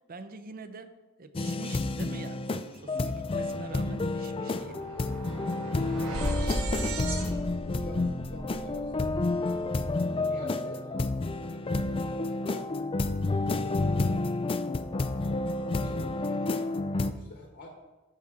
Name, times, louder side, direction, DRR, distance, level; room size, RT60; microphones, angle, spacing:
voice 1, 0.1-4.9, right 3 dB, 40° right, 10 dB, 0.7 m, -44 dB
sound 1, 1.3-17.1, left 2 dB, 25° left, 0.4 m, -30 dB
purgatory camera, 3.0-3.1 3.4-9.7, right 1 dB, 80° right, 1.5 m, -36 dB
voice 2, 4.5-9.6 10.1-11.1 11.5-12.7 13.4-14.6 15.5-17.7, left 1 dB, 50° left, 1 dB, 1.2 m, -48 dB
15.0 x 5.9 x 3.7 m, 1.2 s
head